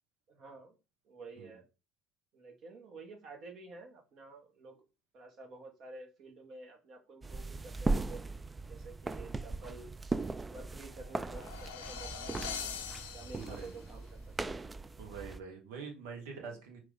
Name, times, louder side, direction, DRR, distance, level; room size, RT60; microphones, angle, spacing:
voice 1, 0.3-0.8 1.0-1.6 2.3-4.8 5.1-8.4 8.7-9.9 10.5-12.9 13.1-14.2 14.5-14.7 16.3-16.6, right 3 dB, 55° right, 4 dB, 1.2 m, -51 dB
sound 1, 7.2-15.4, right 3 dB, 20° right, 0.3 m, -38 dB
sound 2, 10.9-13.9, left 8 dB, 85° left, 0.5 m, -43 dB
voice 2, 13.4-13.7 15.0-16.8, right 5 dB, 75° right, 2 dB, 1.0 m, -45 dB
4.7 x 2.5 x 3.8 m, 0.29 s
hypercardioid pair, 65°, 0 cm